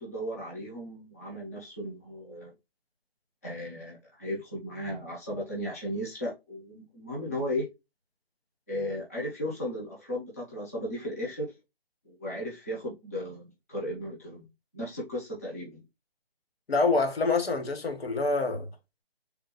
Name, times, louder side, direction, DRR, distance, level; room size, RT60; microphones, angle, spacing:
voice 1, 0.0-2.5 3.4-7.7 8.7-11.5 12.0-14.4 14.7-15.8, equal, 15° left, 0.7 m, -35 dB
voice 2, 16.7-18.7, left 3 dB, 75° left, 1.1 m, -26 dB
3.5 x 2.4 x 2.9 m
figure-of-eight pair, 165°, 31 cm